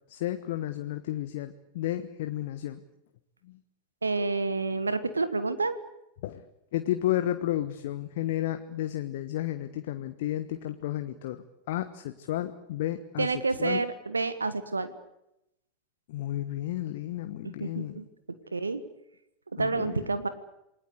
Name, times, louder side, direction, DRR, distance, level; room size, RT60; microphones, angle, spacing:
voice 1, 0.1-2.8 3.4-3.6 6.2-6.5 6.7-13.8 16.1-17.9 19.6-20.1, left 13 dB, 55° left, 9 dB, 1.3 m, -32 dB
voice 2, 4.0-5.8 13.2-14.9 17.6-18.0 18.5-18.8 19.5-20.3, right 3 dB, 80° right, 12 dB, 1.5 m, -29 dB
28.0 x 20.0 x 8.3 m, 0.87 s
figure-of-eight pair, 90°, 0 cm